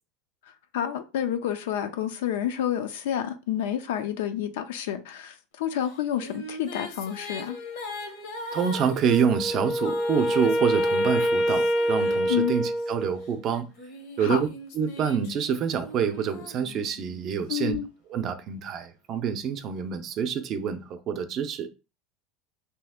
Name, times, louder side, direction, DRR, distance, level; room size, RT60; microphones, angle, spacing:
voice 1, 0.7-7.6 12.3-12.6 14.2-14.4 17.5-17.9, left 10 dB, 90° left, 0.5 m, -29 dB
sound 1, 5.9-12.9 13.5-17.2, left 1 dB, 70° left, 0.8 m, -40 dB
voice 2, 8.5-13.7 14.2-14.5 14.7-17.8 18.1-21.7, right 7 dB, 40° right, 0.5 m, -27 dB
Wind instrument woodwind instrument, 9.0-13.4, equal, 20° left, 0.4 m, -26 dB
2.8 x 2.4 x 3.5 m
supercardioid pair, 140°, 0 cm